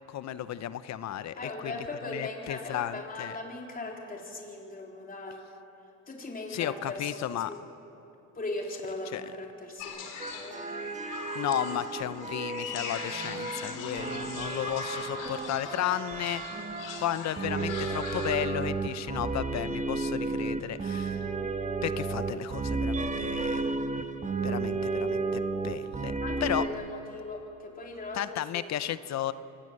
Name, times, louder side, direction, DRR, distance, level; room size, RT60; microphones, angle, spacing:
voice 1, 0.1-3.3 6.5-7.5 9.1-9.2 11.3-16.4 17.0-21.3 21.8-23.7 24.4-26.1 26.4-26.6 28.1-29.3, left 11 dB, 55° left, 15 dB, 0.8 m, -34 dB
voice 2, 1.3-5.4 6.1-7.6 8.4-10.7 11.7-11.8 26.2-28.9, left 2 dB, 25° left, 0 dB, 3.9 m, -39 dB
sound 1, 9.8-18.4, left 6 dB, 75° left, 3.4 m, -41 dB
sound 2, 10.2-26.7, right 3 dB, 25° right, 1.3 m, -33 dB
24.5 x 19.5 x 7.8 m, 2.9 s
cardioid pair, 100°, 32 cm